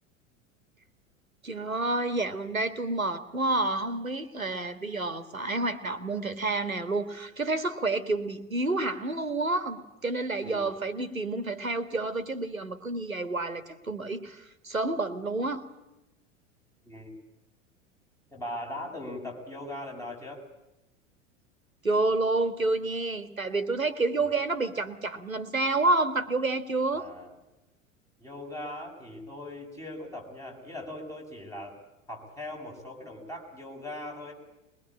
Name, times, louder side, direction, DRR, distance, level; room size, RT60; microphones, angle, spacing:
voice 1, 1.4-15.6 21.8-27.1, right 2 dB, 85° right, 12 dB, 2.0 m, -29 dB
voice 2, 10.4-10.7 16.8-17.1 18.3-20.4 24.2-24.4 26.9-27.3 28.2-31.8 32.1-34.3, left 1 dB, 10° left, 0 dB, 7.2 m, -40 dB
22.5 x 22.0 x 8.8 m, 0.96 s
figure-of-eight pair, 85°, 40 cm